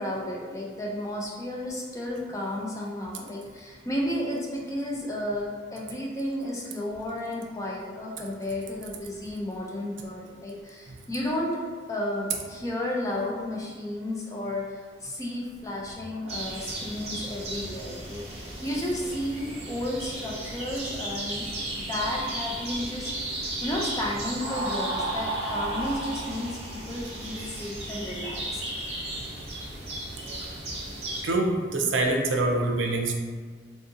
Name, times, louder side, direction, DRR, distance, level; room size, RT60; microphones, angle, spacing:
voice 1, 0.0-11.5 11.9-21.5 21.9-23.1 23.6-28.6, left 1 dB, 15° left, -3 dB, 0.4 m, -32 dB
sound 1, 16.3-31.2, right 1 dB, 35° right, 0.8 m, -34 dB
voice 2, 31.2-33.1, right 2 dB, 80° right, 1 dB, 0.5 m, -26 dB
3.6 x 2.6 x 2.5 m, 1.5 s
head